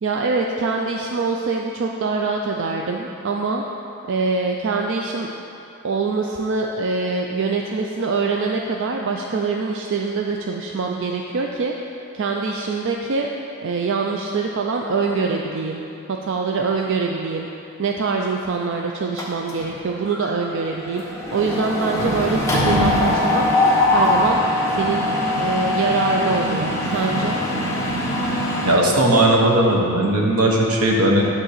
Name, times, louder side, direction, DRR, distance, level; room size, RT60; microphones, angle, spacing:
voice 1, 0.0-3.6 4.1-5.3 5.8-11.7 12.1-13.3 13.6-15.8 16.1-17.5 17.8-23.4 23.9-24.4 24.7-25.1 25.4-27.4, right 4 dB, 55° right, 1 dB, 0.4 m, -24 dB
Mechanisms, 19.2-19.8 20.1-20.3 20.6-28.8, left 1 dB, 15° left, 1.0 m, -21 dB
voice 2, 28.6-31.2, right 1 dB, 85° right, -1 dB, 1.2 m, -17 dB
10.0 x 3.7 x 6.6 m, 2.7 s
head